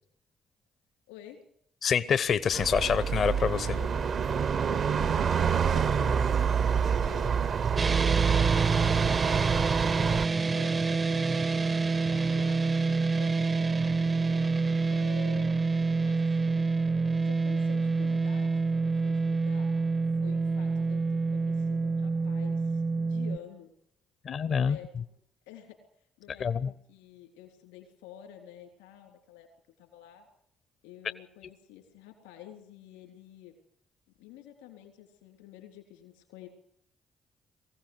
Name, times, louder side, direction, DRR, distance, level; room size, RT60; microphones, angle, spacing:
voice 1, 1.8-3.7 24.2-24.8 26.4-26.7, left 7 dB, 60° left, 16 dB, 0.9 m, -26 dB
sound 1, 2.5-10.3, right 6 dB, 60° right, 1.0 m, -26 dB
voice 2, 3.5-7.3 7.8-13.8 14.9-15.6 16.0-16.7 17.2-19.7 20.2-23.7 24.4-24.9 25.5-25.8 26.2-29.5 29.8-30.3 30.8-33.5 34.2-36.5, left 10 dB, 85° left, 4 dB, 3.6 m, -50 dB
sound 2, 7.8-23.4, right 4 dB, 40° right, 0.7 m, -27 dB
22.5 x 16.0 x 8.0 m, 0.70 s
hypercardioid pair, 45°, 0 cm